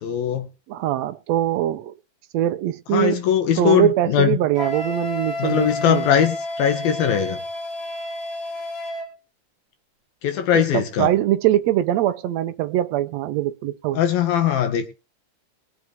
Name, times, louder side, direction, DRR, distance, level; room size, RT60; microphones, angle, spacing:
voice 1, 0.0-0.5 2.9-4.4 5.4-7.4 10.2-11.1 13.9-14.9, left 9 dB, 90° left, 3.7 m, -20 dB
voice 2, 0.7-1.9 2.3-3.2 3.6-6.1 10.5-14.0, right 12 dB, 85° right, 1.5 m, -22 dB
Wind instrument woodwind instrument, 4.5-9.1, left 1 dB, 15° left, 4.7 m, -30 dB
22.0 x 7.6 x 3.5 m
omnidirectional pair, 4.1 m